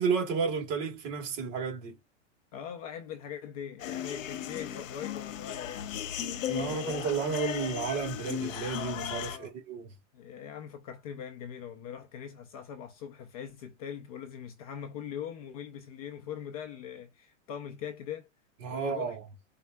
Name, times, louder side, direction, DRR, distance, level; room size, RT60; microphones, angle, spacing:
voice 1, 0.0-2.0 6.5-9.9 18.6-19.2, right 6 dB, 35° right, 1.7 m, -32 dB
voice 2, 2.5-5.9 9.3-9.5 10.1-18.3 18.7-19.2, left 8 dB, 30° left, 0.4 m, -41 dB
sound 1, 3.8-9.4, left 10 dB, 80° left, 0.9 m, -36 dB
4.4 x 3.4 x 2.2 m
supercardioid pair, 160°, 39 cm